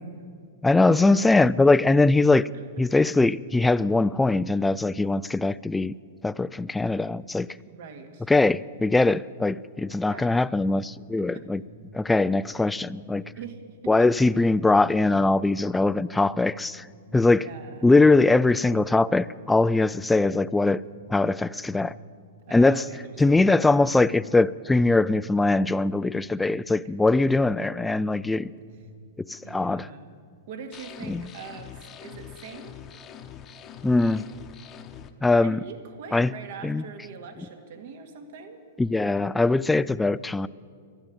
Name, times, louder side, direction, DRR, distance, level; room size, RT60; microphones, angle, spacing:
voice 1, 0.6-2.5 2.8-5.9 6.2-7.5 8.3-11.6 11.9-13.2 13.9-16.9 17.1-17.5 17.8-20.8 21.1-22.0 22.5-22.9 23.2-28.5 29.2-29.9 31.0-31.3 33.8-34.3 35.2-35.6 36.1-36.3 36.6-36.8 38.8-40.5, left 2 dB, 5° left, 0.3 m, -21 dB
voice 2, 7.7-8.3 10.0-10.6 11.2-11.4 13.4-14.1 17.2-17.9 22.5-23.0 23.3-23.7 27.1-27.2 29.4-30.1 30.5-32.7 35.4-38.6, right 6 dB, 60° right, 1.8 m, -42 dB
Alarm, 10.8-28.3 28.5-29.8, right 1 dB, 75° right, 4.0 m, -49 dB
sound 1, 30.7-35.1, left 8 dB, 30° left, 0.9 m, -44 dB
12.0 x 11.0 x 9.0 m
hypercardioid pair, 120°, 0 cm